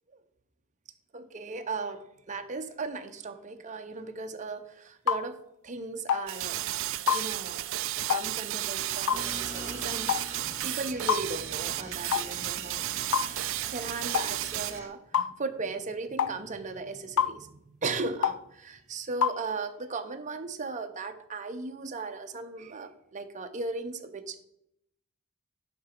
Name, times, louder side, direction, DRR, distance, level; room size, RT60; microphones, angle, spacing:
voice 1, 1.1-5.4 5.6-6.6 7.1-7.7 8.1-12.8 13.7-24.4, right 3 dB, 35° right, 7 dB, 0.7 m, -37 dB
sound 1, 5.1-5.3 6.1-6.3 7.1-7.3 8.1-8.3 9.1-9.3 10.1-10.3 11.1-11.3 12.1-12.3 13.1-13.3 14.1-14.3 15.1-15.3 16.2-16.4 17.2-17.4 18.2-18.4 19.2-19.4, left 8 dB, 65° left, 0.4 m, -26 dB
sound 2, 6.3-14.8, right 15 dB, 65° right, 0.4 m, -33 dB
sound 3, 9.1-14.9, right 1 dB, 15° right, 2.0 m, -44 dB
8.8 x 6.0 x 4.4 m, 0.78 s
head